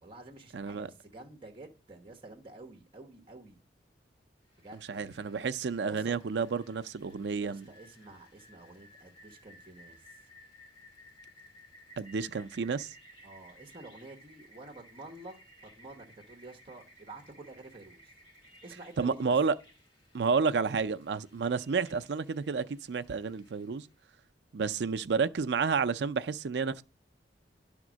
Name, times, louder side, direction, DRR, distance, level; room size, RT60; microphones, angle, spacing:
voice 1, 0.0-3.6 4.6-5.2 5.8-6.3 7.4-10.2 13.2-18.1 18.6-19.4, right 2 dB, 30° right, 1.0 m, -50 dB
voice 2, 0.5-0.9 4.9-7.7 12.0-12.9 19.0-19.6 20.1-23.9 24.5-26.8, right 5 dB, 70° right, 0.5 m, -30 dB
Rain, 4.5-23.9, equal, 30° left, 2.2 m, -58 dB
11.0 x 3.6 x 6.2 m
head